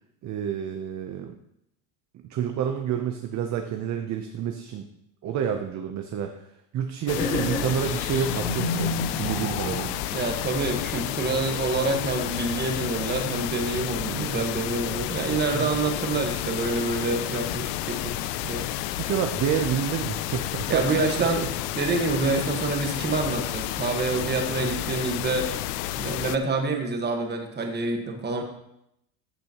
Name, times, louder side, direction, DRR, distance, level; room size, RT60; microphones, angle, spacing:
voice 1, 0.2-1.3 2.3-4.9 5.2-6.3 6.7-10.0 14.1-14.4 15.5-15.7 18.4-18.7 19.0-20.9 21.2-21.5 24.3-24.7, right 8 dB, 35° right, 5 dB, 0.7 m, -29 dB
sound 1, 7.1-26.4, left 14 dB, 90° left, 0.6 m, -31 dB
sound 2, 7.1-10.2, left 2 dB, 25° left, 2.5 m, -30 dB
voice 2, 10.1-18.2 18.5-18.7 20.7-21.4 21.8-25.5 26.0-28.4, right 3 dB, 20° right, 3 dB, 1.5 m, -27 dB
13.5 x 6.7 x 3.0 m, 0.81 s
supercardioid pair, 130°, 47 cm